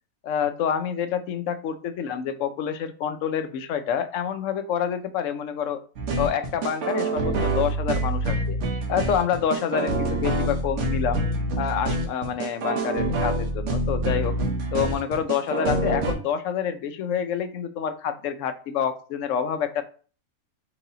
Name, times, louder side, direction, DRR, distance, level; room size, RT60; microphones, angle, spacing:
voice 1, 0.2-5.8 6.2-8.6 8.9-11.2 11.6-14.4 14.7-19.8, left 8 dB, 70° left, 9 dB, 0.8 m, -27 dB
sound 1, 6.0-16.1, right 2 dB, 60° right, 1.1 m, -26 dB
4.8 x 2.7 x 3.8 m, 0.39 s
omnidirectional pair, 1.5 m